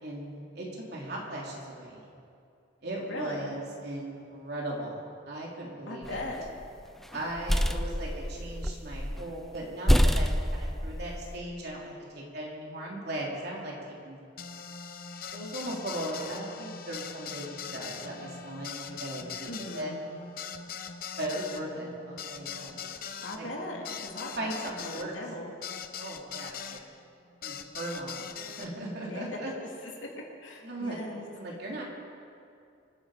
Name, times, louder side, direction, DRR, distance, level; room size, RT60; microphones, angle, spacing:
voice 1, 0.0-2.1 2.8-6.2 7.1-13.7 14.0-14.2 15.3-19.5 19.7-19.9 21.2-22.8 23.4-23.5 24.2-25.1 26.0-26.8 27.4-29.5 30.6-31.0 31.4-31.8, right 1 dB, 55° right, -3 dB, 3.3 m, -38 dB
voice 2, 3.0-3.6 5.9-6.4 19.4-20.0 23.2-25.5 29.0-29.4 29.8-29.9 30.4-31.3, left 1 dB, 80° left, -1 dB, 2.7 m, -39 dB
sound 1, 6.1-6.6 7.1-9.2 9.5-9.6 9.9-11.4, equal, ahead, 0.4 m, -27 dB
sound 2, 14.4-26.8 27.4-28.7, left 7 dB, 50° left, 0.8 m, -41 dB
25.0 x 9.8 x 5.1 m, 2.5 s
head